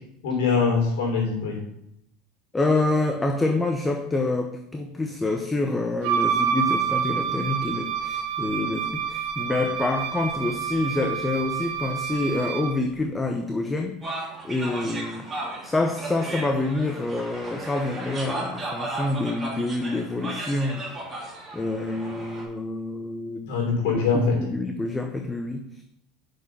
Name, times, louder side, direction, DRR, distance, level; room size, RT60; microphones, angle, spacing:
voice 1, 0.2-1.6 23.5-24.4, left 5 dB, 75° left, 1 dB, 3.3 m, -23 dB
voice 2, 2.5-15.3 15.6-20.9 21.5-23.6 23.8-25.8, left 2 dB, 10° left, 5 dB, 0.8 m, -27 dB
Wind instrument woodwind instrument, 6.0-12.8, right 8 dB, 65° right, 1.0 m, -28 dB
sound 1, 14.0-22.4, right 2 dB, 20° right, 3.5 m, -35 dB
6.5 x 6.0 x 7.0 m, 0.79 s
supercardioid pair, 115°, 0 cm